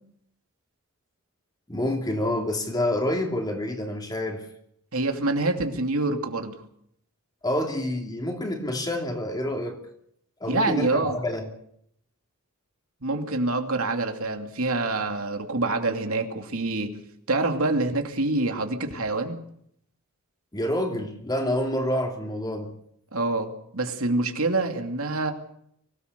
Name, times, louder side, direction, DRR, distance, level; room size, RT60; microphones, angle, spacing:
voice 1, 1.7-4.5 7.4-9.8 10.4-11.4 20.5-22.7, left 1 dB, 20° left, 3.0 m, -28 dB
voice 2, 4.9-6.6 10.5-11.2 13.0-16.9 17.3-19.4 23.1-25.3, right 2 dB, 70° right, 2.7 m, -26 dB
24.5 x 17.5 x 6.9 m
head